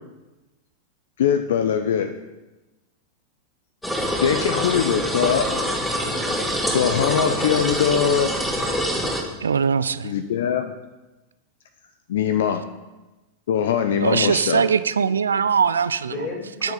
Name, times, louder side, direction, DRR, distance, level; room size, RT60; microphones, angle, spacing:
voice 1, 1.2-2.1 4.2-5.5 6.7-8.3 10.0-10.7 12.1-12.6 13.5-14.7, left 8 dB, 60° left, 9 dB, 0.7 m, -22 dB
sound 1, 3.8-9.2, equal, 5° left, 2.2 m, -25 dB
voice 2, 4.5-6.2 16.0-16.7, left 2 dB, 25° left, -1 dB, 4.5 m, -33 dB
voice 3, 9.4-10.1 13.9-16.2 16.6-16.7, right 6 dB, 70° right, 14 dB, 0.4 m, -21 dB
20.0 x 7.0 x 4.0 m, 1.1 s
figure-of-eight pair, 90°, 0 cm